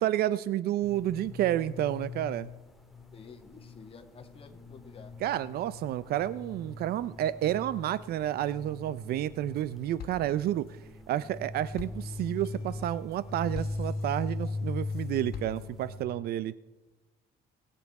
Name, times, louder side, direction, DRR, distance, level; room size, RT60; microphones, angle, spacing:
voice 1, 0.0-2.5 5.2-10.8 11.1-16.5, right 12 dB, 65° right, 17 dB, 0.5 m, -30 dB
sound 1, 0.8-16.1, left 3 dB, ahead, 1.8 m, -40 dB
voice 2, 3.1-5.1, left 5 dB, 35° left, 4 dB, 1.9 m, -51 dB
sound 2, 9.1-9.7 10.0-16.0, left 7 dB, 65° left, 1.7 m, -48 dB
23.0 x 8.3 x 4.7 m, 1.1 s
cardioid pair, 110°, 17 cm